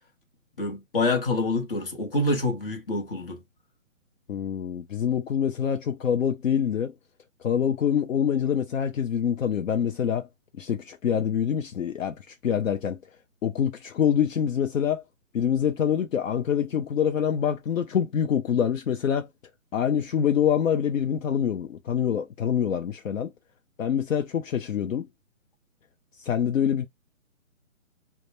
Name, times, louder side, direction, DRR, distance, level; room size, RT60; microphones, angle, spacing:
voice 1, 0.6-3.4, left 2 dB, 40° left, 0.9 m, -26 dB
voice 2, 4.3-6.9 7.4-10.3 10.6-13.0 13.4-15.0 15.3-19.3 19.7-23.3 23.8-25.1 26.2-26.9, left 8 dB, 70° left, 0.6 m, -25 dB
2.1 x 2.1 x 2.9 m
hypercardioid pair, 165°, 40 cm